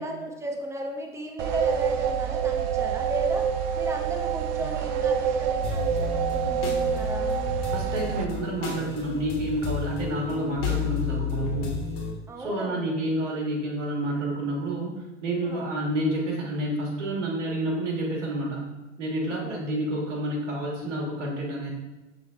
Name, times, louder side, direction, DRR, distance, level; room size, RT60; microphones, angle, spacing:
voice 1, 0.0-3.5 3.7-7.3 12.3-12.9 15.4-15.7 19.4-19.6, right 1 dB, 10° right, 2 dB, 0.6 m, -35 dB
sound 1, 1.4-8.3, right 8 dB, 55° right, 0.5 m, -27 dB
sound 2, 5.6-12.1, left 7 dB, 50° left, 1.4 m, -32 dB
voice 2, 7.7-11.7 12.4-18.6 19.0-21.7, right 1 dB, 80° right, -2 dB, 1.4 m, -29 dB
6.1 x 3.3 x 2.2 m, 1.1 s
hypercardioid pair, 85°, 36 cm